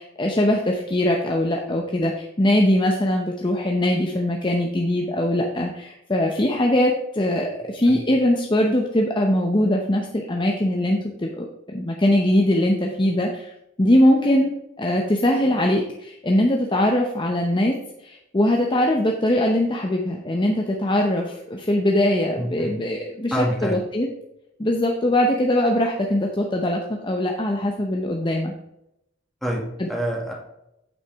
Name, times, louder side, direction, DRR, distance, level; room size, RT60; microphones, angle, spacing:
voice 1, 0.0-13.5 13.8-17.7 18.0-24.1 24.6-28.5 29.8-29.9, left 1 dB, 25° left, 1 dB, 0.8 m, -21 dB
voice 2, 22.4-22.7 23.3-23.8 29.4-29.6 29.9-30.3, equal, ahead, -2 dB, 2.0 m, -26 dB
8.6 x 8.0 x 3.5 m, 0.83 s
head